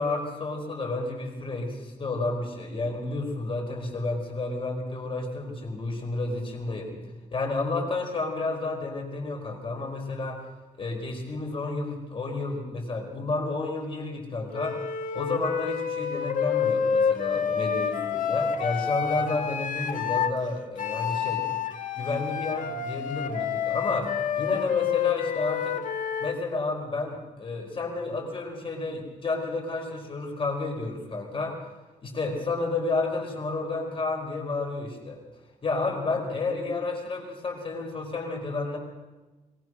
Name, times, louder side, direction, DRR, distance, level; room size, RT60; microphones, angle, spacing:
voice 1, 0.0-7.0 7.3-10.4 10.8-14.8 15.1-21.5 22.0-25.8 26.2-31.6 32.0-35.2 35.6-38.8, left 3 dB, 40° left, 1 dB, 4.7 m, -31 dB
Wind instrument woodwind instrument, 14.5-20.4 20.8-26.4, left 7 dB, 70° left, 1.7 m, -28 dB
22.0 x 19.0 x 6.3 m, 1.2 s
cardioid pair, 120°, 14 cm